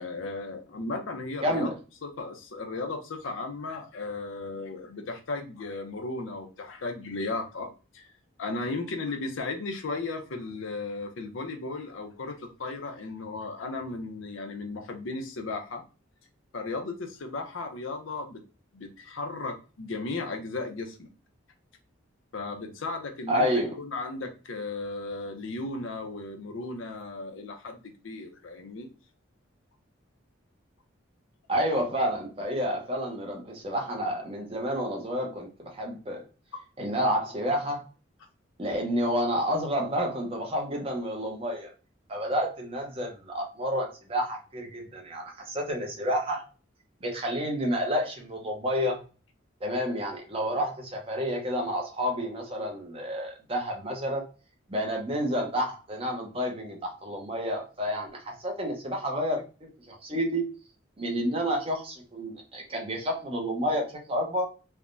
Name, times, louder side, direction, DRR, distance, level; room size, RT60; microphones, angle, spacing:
voice 1, 0.0-1.7 2.0-8.1 8.4-15.8 16.5-18.4 18.7-21.1 22.3-28.9, left 3 dB, 80° left, 5 dB, 0.6 m, -35 dB
voice 2, 1.4-1.7 23.3-23.8 31.5-36.2 36.8-37.8 38.6-41.7 42.1-46.4 47.0-49.0 49.6-54.2 54.7-59.4 59.9-60.5 61.0-64.5, equal, 30° right, 1 dB, 0.7 m, -29 dB
3.3 x 2.1 x 2.4 m, 0.34 s
head